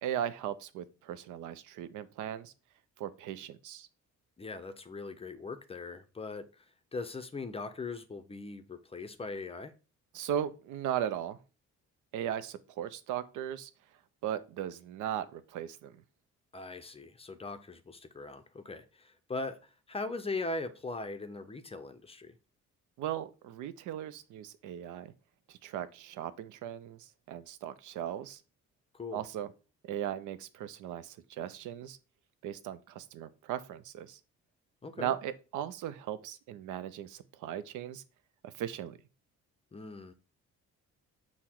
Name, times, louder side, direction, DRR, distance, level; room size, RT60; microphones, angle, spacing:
voice 1, 0.0-2.5 3.0-3.9 10.1-11.4 12.1-13.7 14.2-16.0 23.0-25.1 25.5-28.4 29.1-29.5 29.8-32.0 32.4-34.2 35.0-38.0 38.4-39.0, right 10 dB, 80° right, 0.5 m, -37 dB
voice 2, 4.4-6.5 6.9-9.7 16.5-19.6 19.9-22.3 28.9-29.2 34.8-35.1 39.7-40.1, left 3 dB, 20° left, 0.5 m, -40 dB
5.6 x 2.1 x 4.3 m
cardioid pair, 90°, 30 cm